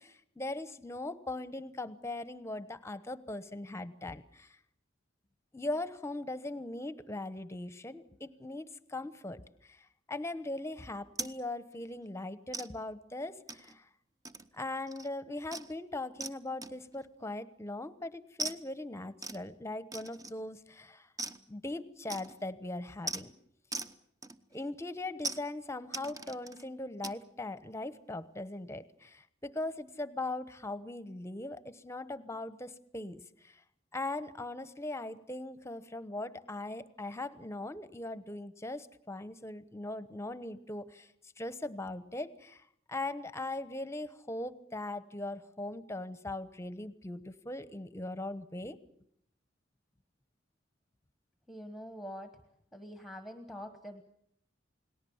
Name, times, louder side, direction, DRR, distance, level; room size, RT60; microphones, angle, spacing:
voice 1, 0.0-4.6 5.5-13.9 14.5-21.1 21.5-23.3 24.5-33.6 33.9-41.1 41.4-48.8, left 2 dB, 15° left, 14 dB, 1.0 m, -40 dB
sound 1, 11.2-11.4 11.7-11.9 12.5-12.7 13.5-13.8 14.2-14.6 14.9-15.1 15.5-15.7 16.2-16.4 16.6-17.0 18.4-18.6 19.2-19.4 19.9-20.5 21.2-21.4 22.1-22.5 23.1-23.2 23.7-24.0 24.2-24.7 25.2-25.4 25.9-26.6 27.0-27.2, right 3 dB, 20° right, 0.9 m, -40 dB
voice 2, 51.5-52.3 52.7-54.0, equal, ahead, 7 dB, 1.4 m, -45 dB
29.0 x 19.5 x 7.2 m, 0.70 s
head